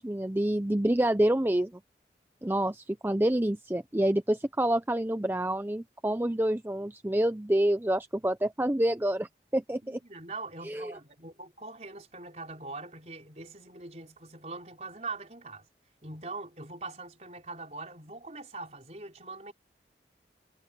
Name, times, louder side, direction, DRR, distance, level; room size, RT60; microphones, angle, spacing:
voice 1, 0.0-1.7 2.4-10.0 10.6-10.9, right 1 dB, 10° right, 0.5 m, -27 dB
voice 2, 9.8-15.7 16.0-19.5, right 3 dB, 40° right, 5.1 m, -42 dB
head